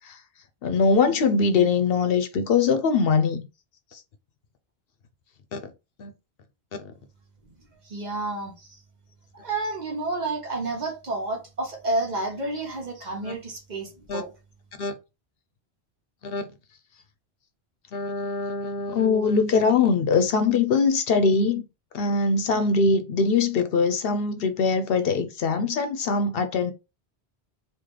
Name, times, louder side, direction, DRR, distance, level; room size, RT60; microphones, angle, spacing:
voice 1, 0.6-3.4 3.9-4.0 5.5-5.6 6.0-6.1 13.2-13.3 14.1-14.2 14.8-14.9 16.2-16.5 17.9-21.6 21.9-26.7, left 4 dB, 65° left, 0.7 m, -22 dB
voice 2, 7.8-8.8 9.3-14.3, right 2 dB, 45° right, 1.0 m, -30 dB
3.2 x 2.4 x 3.7 m
omnidirectional pair, 1.1 m